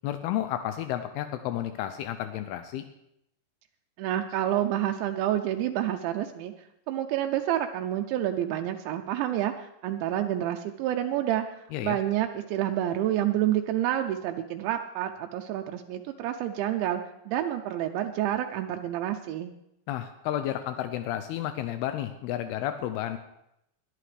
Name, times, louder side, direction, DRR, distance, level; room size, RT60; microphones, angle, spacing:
voice 1, 0.0-2.8 11.7-12.0 19.9-23.2, left 12 dB, 85° left, 9 dB, 2.2 m, -31 dB
voice 2, 4.0-6.5 6.9-17.0 17.3-19.5, right 12 dB, 85° right, 4 dB, 2.9 m, -28 dB
21.0 x 11.0 x 3.3 m, 0.82 s
omnidirectional pair, 5.2 m